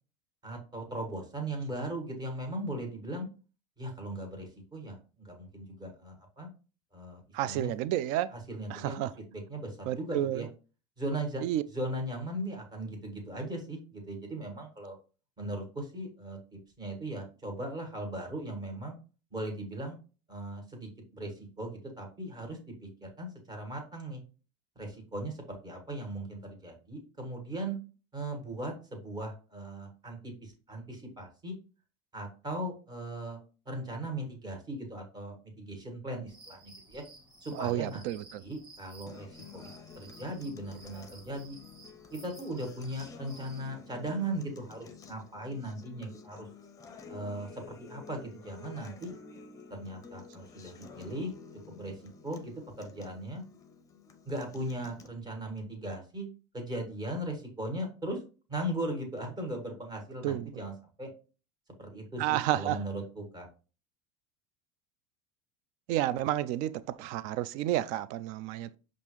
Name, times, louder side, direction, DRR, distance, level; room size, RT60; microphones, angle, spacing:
voice 1, 0.4-3.3 3.8-6.5 6.9-7.7 8.3-9.0 9.3-10.5 11.0-11.4 11.7-15.0 15.4-16.4 16.8-19.0 19.3-20.0 20.3-24.2 24.8-27.8 28.1-31.6 32.1-33.4 33.7-37.0 37.4-38.0 38.3-39.7 40.0-41.6 42.1-46.5 47.1-49.1 49.7-51.3 51.7-53.4 54.3-56.3 56.5-58.2 58.5-60.7 61.0-61.1 61.8-63.5, right 1 dB, 25° right, 1.7 m, -38 dB
voice 2, 7.3-8.3 8.7-9.1 9.9-10.4 11.4-11.6 37.6-38.4 60.2-60.4 62.2-62.8 65.9-68.7, right 13 dB, 60° right, 0.4 m, -30 dB
sound 1, 36.3-43.7, right 2 dB, 5° right, 1.7 m, -55 dB
Acoustic guitar, 39.1-55.1, left 5 dB, 25° left, 0.6 m, -51 dB
5.4 x 2.5 x 3.1 m
supercardioid pair, 110°, 15 cm